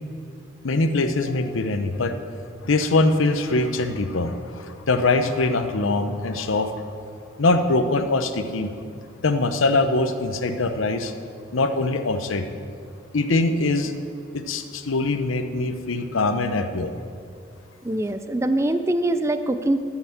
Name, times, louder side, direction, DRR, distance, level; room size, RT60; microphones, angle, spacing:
voice 1, 0.6-2.1 2.6-6.8 7.4-8.7 9.2-11.1 11.5-12.4 13.1-13.9 14.3-16.9, left 2 dB, 85° left, 8 dB, 0.8 m, -23 dB
voice 2, 17.8-19.8, right 1 dB, 15° right, 10 dB, 0.4 m, -23 dB
12.0 x 5.9 x 7.3 m, 2.3 s
head